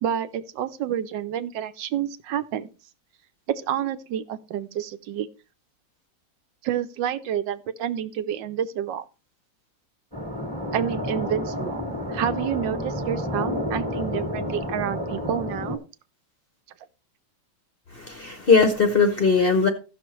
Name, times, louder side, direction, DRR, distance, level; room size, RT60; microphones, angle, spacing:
voice 1, 0.0-2.7 3.5-5.3 6.6-9.0 10.7-11.8 12.1-15.8, right 10 dB, 85° right, 1.4 m, -29 dB
sound 1, 10.1-15.8, left 1 dB, 15° right, 1.4 m, -30 dB
voice 2, 18.0-19.7, left 4 dB, 50° left, 0.7 m, -19 dB
15.5 x 6.1 x 3.0 m
omnidirectional pair, 1.9 m